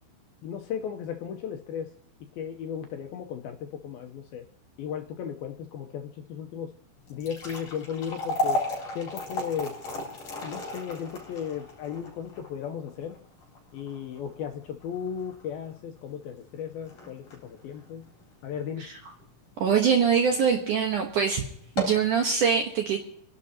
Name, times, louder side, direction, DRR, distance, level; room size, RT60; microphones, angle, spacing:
voice 1, 0.4-1.9 2.4-4.4 4.8-6.7 7.1-8.6 9.0-9.8 10.4-13.2 13.7-18.0 18.4-18.9, left 8 dB, 80° left, 5 dB, 2.3 m, -35 dB
sound 1, 7.0-19.3 19.7-19.8 20.5-20.7 21.0-21.1 21.6-22.1, left 1 dB, 40° left, 4.7 m, -35 dB
voice 2, 19.6-21.4 21.8-23.0, right 6 dB, 70° right, 3 dB, 2.0 m, -23 dB
25.5 x 11.5 x 2.8 m, 0.67 s
omnidirectional pair, 5.1 m